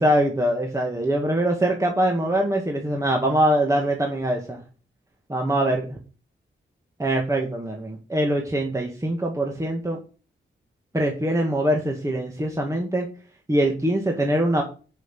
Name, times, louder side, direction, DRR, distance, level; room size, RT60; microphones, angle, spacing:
voice 1, 0.0-4.6 5.3-6.0 7.0-10.0 10.9-13.1 13.5-14.6, right 1 dB, 15° right, 1 dB, 2.0 m, -23 dB
10.5 x 5.9 x 8.3 m, 0.36 s
wide cardioid pair, 115°, 21 cm